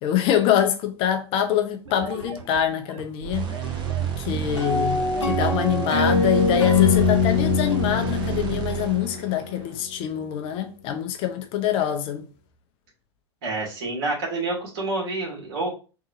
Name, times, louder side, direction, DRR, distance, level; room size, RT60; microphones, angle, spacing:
voice 1, 0.0-3.5 4.2-12.3, left 9 dB, 40° left, 0.6 m, -24 dB
sound 1, 1.9-7.9, right 3 dB, 85° right, 0.6 m, -38 dB
sound 2, 3.3-9.8, right 10 dB, 30° right, 0.8 m, -30 dB
sound 3, 4.6-9.7, left 6 dB, 80° left, 0.7 m, -23 dB
voice 2, 13.4-15.7, right 2 dB, 55° right, 2.2 m, -28 dB
3.9 x 2.8 x 3.6 m
figure-of-eight pair, 90°, 15 cm